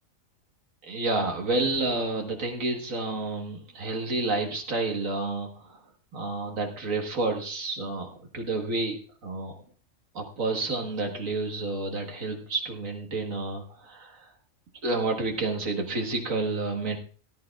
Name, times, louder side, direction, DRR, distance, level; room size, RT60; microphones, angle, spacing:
voice 1, 0.8-5.8 6.1-9.5 10.1-14.3 14.8-17.0, right 3 dB, 85° right, 2 dB, 1.9 m, -30 dB
18.0 x 11.5 x 2.4 m, 0.41 s
omnidirectional pair, 1.4 m